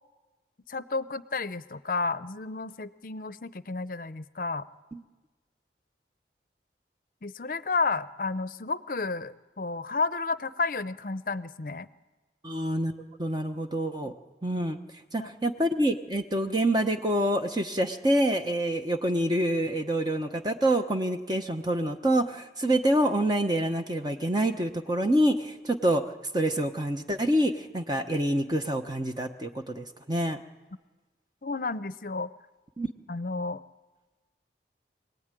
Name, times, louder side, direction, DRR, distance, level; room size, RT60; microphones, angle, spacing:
voice 1, 0.7-4.7 7.2-11.9 14.0-14.1 15.2-15.3 31.4-32.3 33.1-33.6, left 3 dB, 50° left, 14 dB, 0.7 m, -31 dB
voice 2, 12.4-12.9 13.2-14.1 14.4-14.8 15.1-30.4 32.8-32.9, right 1 dB, 25° right, 5 dB, 1.0 m, -26 dB
26.0 x 18.5 x 9.1 m, 1.2 s
head